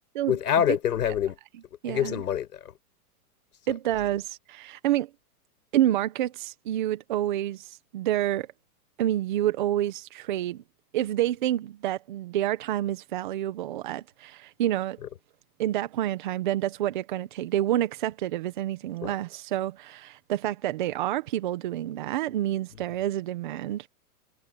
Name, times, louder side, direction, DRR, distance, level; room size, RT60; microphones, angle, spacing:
voice 1, 0.3-1.4 1.9-2.7 19.0-19.1, left 9 dB, 80° left, 5.6 m, -26 dB
voice 2, 1.8-2.2 3.7-5.1 5.7-8.5 9.0-10.6 10.9-15.0 15.6-23.9, right 13 dB, 30° right, 1.1 m, -28 dB
hypercardioid pair, 175°, 46 cm